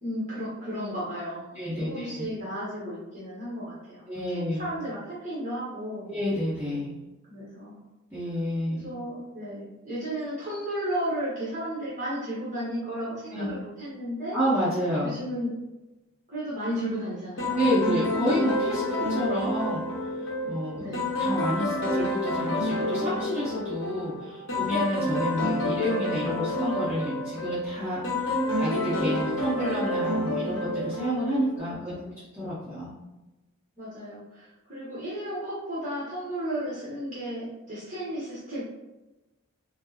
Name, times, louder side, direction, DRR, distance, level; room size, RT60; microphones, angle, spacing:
voice 1, 0.0-6.1 7.3-7.8 8.7-14.4 15.0-15.5 16.3-17.6 20.8-21.1 28.4-28.8 31.7-32.2 33.8-38.6, equal, 35° right, -9 dB, 1.0 m, -34 dB
voice 2, 1.5-2.2 4.1-4.7 6.1-6.9 8.1-8.9 13.3-13.5 14.3-15.1 17.5-19.8 20.4-20.8 21.2-32.0 32.3-32.9, equal, 10° right, -13 dB, 1.0 m, -29 dB
sound 1, 17.4-31.6, left 1 dB, 55° left, 0.8 m, -29 dB
4.4 x 2.0 x 2.8 m, 1.0 s
head